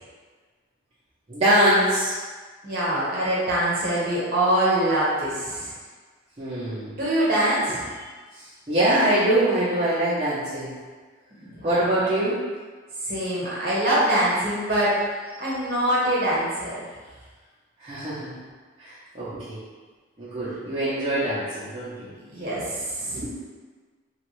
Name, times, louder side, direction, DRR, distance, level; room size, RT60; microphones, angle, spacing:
voice 1, 1.3-2.1 6.4-7.0 8.7-10.7 11.6-12.4 17.8-18.4 18.8-19.6 20.2-22.1 23.1-23.3, right 1 dB, 30° right, -13 dB, 0.6 m, -23 dB
voice 2, 2.6-5.7 6.9-8.1 11.4-11.9 13.0-15.0 15.4-16.8 22.2-23.3, right 1 dB, 45° right, -7 dB, 1.0 m, -24 dB
3.0 x 2.4 x 3.0 m, 1.4 s
head